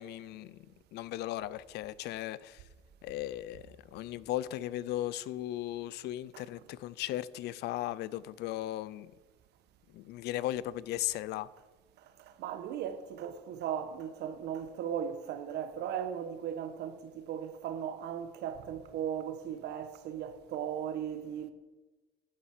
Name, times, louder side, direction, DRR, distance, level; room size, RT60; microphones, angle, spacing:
voice 1, 0.0-2.6 3.0-9.1 9.9-11.5, left 14 dB, 80° left, 0.5 m, -37 dB
voice 2, 12.4-21.5, right 9 dB, 80° right, 1.2 m, -37 dB
11.5 x 9.0 x 6.6 m
cardioid pair, 110°, 17 cm